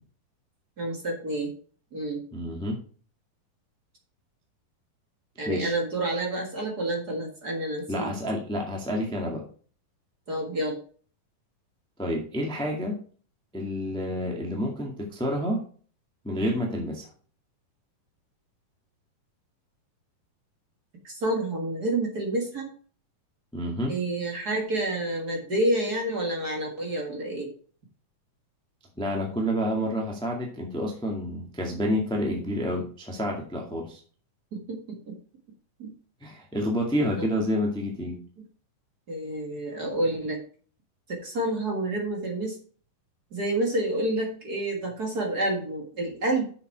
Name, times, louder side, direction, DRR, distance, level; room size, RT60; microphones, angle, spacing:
voice 1, 0.8-1.5 1.9-2.2 5.4-8.1 10.3-10.8 21.0-22.7 23.9-27.5 34.5-35.1 35.8-35.9 37.2-37.3 39.1-40.4 41.1-42.6 43.3-46.5, right 1 dB, 35° right, 0 dB, 1.7 m, -29 dB
voice 2, 2.3-2.8 5.4-5.7 7.9-9.4 12.0-12.9 13.5-15.6 16.2-17.1 23.5-23.9 29.0-34.0 36.2-38.2, equal, 5° left, 0 dB, 0.5 m, -29 dB
7.2 x 6.9 x 4.7 m, 0.43 s
omnidirectional pair, 4.1 m